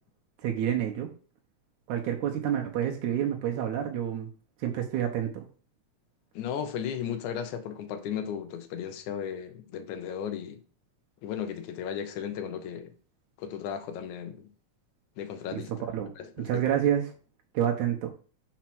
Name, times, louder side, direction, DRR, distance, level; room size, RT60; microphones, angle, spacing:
voice 1, 0.4-1.1 1.9-4.3 4.6-5.4 15.5-16.1 16.4-17.0 17.5-18.1, right 10 dB, 90° right, 2.4 m, -28 dB
voice 2, 6.4-10.6 11.2-12.9 13.4-14.5 15.2-15.7 16.2-16.6, left 8 dB, 80° left, 2.3 m, -35 dB
5.7 x 4.5 x 6.1 m
omnidirectional pair, 3.4 m